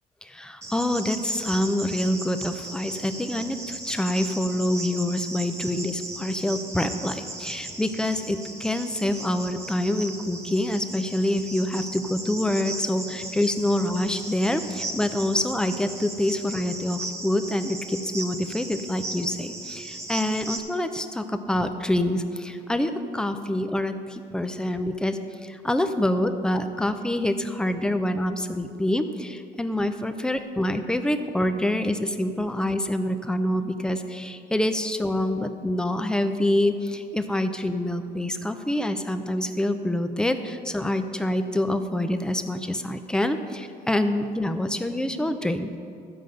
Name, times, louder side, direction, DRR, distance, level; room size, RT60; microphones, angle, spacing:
voice 1, 0.2-45.7, left 1 dB, 5° left, 8 dB, 0.6 m, -26 dB
Cricket, 0.6-20.6, right 2 dB, 15° right, 1.3 m, -37 dB
12.5 x 5.3 x 7.8 m, 2.5 s
cardioid pair, 110°, 17 cm